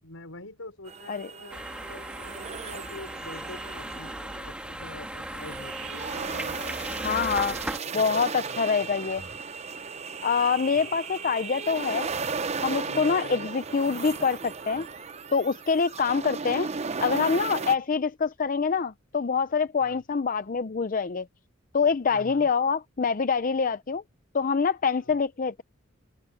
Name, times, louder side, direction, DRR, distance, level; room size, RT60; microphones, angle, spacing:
voice 1, 0.0-9.2 10.6-11.0 12.8-13.6 17.5-17.8 19.8-20.0 22.1-22.5 25.0-25.2, left 2 dB, 75° left, 5.4 m, -46 dB
sound 1, 0.9-17.8, right 5 dB, 30° right, 0.8 m, -36 dB
sound 2, 1.5-7.8, right 1 dB, 5° right, 1.5 m, -37 dB
Breathing, 5.3-10.3 10.5-15.2, right 4 dB, 55° right, 5.2 m, -54 dB
voice 2, 7.0-7.5 7.9-9.2 10.2-12.1 12.6-14.9 15.3-16.7 17.0-21.3 21.7-24.0 24.3-25.6, left 5 dB, 40° left, 0.5 m, -25 dB
open air
head